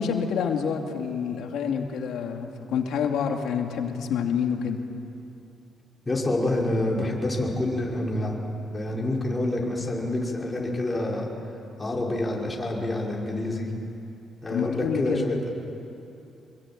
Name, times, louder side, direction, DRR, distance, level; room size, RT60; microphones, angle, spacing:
voice 1, 0.0-4.8 14.5-15.3, left 7 dB, 80° left, 3 dB, 2.6 m, -27 dB
voice 2, 6.1-8.3 8.7-11.3 11.8-13.7 14.4-15.5, left 1 dB, 20° left, -2 dB, 5.6 m, -27 dB
26.0 x 23.0 x 9.0 m, 2.8 s
cardioid pair, 90°, 0 cm